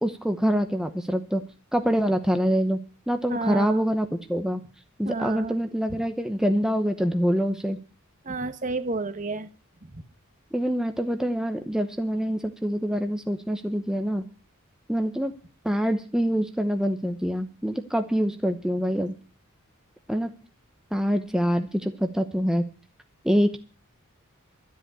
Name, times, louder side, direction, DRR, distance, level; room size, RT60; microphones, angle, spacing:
voice 1, 0.0-1.4 1.7-2.8 3.1-4.6 5.0-7.8 10.5-14.2 14.9-15.3 15.6-19.1 20.1-20.3 20.9-22.6 23.2-23.6, equal, 5° right, 6 dB, 0.8 m, -25 dB
voice 2, 3.3-3.8 5.0-5.5 8.2-9.5 9.9-10.0, right 3 dB, 35° right, 11 dB, 1.2 m, -30 dB
12.5 x 8.3 x 8.7 m, 0.38 s
head